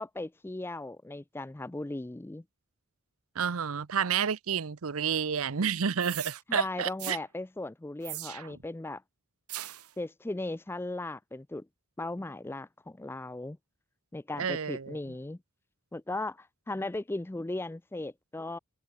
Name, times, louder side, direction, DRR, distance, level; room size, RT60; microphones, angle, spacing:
voice 1, 0.0-2.4 6.5-9.0 10.0-11.7 12.0-13.6 14.1-15.4 15.9-18.6, left 2 dB, 10° left, 0.4 m, -37 dB
voice 2, 3.4-7.2 14.4-15.0, right 7 dB, 70° right, 0.7 m, -30 dB
sound 1, 6.0-6.4 7.0-7.2 8.0-8.7 9.5-9.9, right 15 dB, 90° right, 2.2 m, -39 dB
head